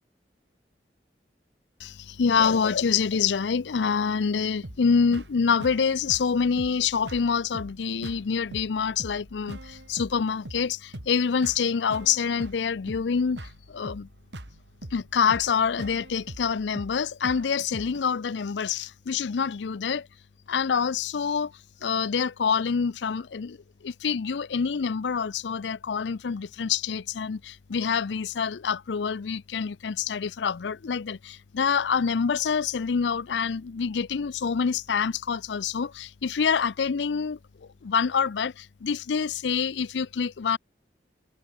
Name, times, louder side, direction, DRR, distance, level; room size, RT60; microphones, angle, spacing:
voice 1, 1.8-14.1 14.9-20.1 20.5-21.5 21.8-23.6 23.8-40.6, left 6 dB, 85° left, 0.5 m, -26 dB
sound 1, 4.6-18.0, right 1 dB, 85° right, 3.2 m, -43 dB
head